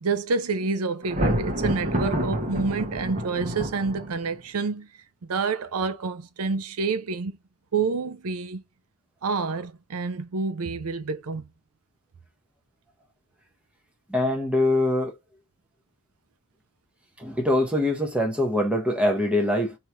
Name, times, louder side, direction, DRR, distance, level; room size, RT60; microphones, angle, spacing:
voice 1, 0.0-4.9 5.3-7.4 7.7-8.6 9.2-11.4, right 4 dB, 85° right, 0.6 m, -28 dB
Thunder, 1.0-4.4, equal, 35° right, 1.0 m, -28 dB
voice 2, 14.1-15.1 17.2-19.7, left 1 dB, 5° right, 0.9 m, -23 dB
3.1 x 2.9 x 4.6 m
head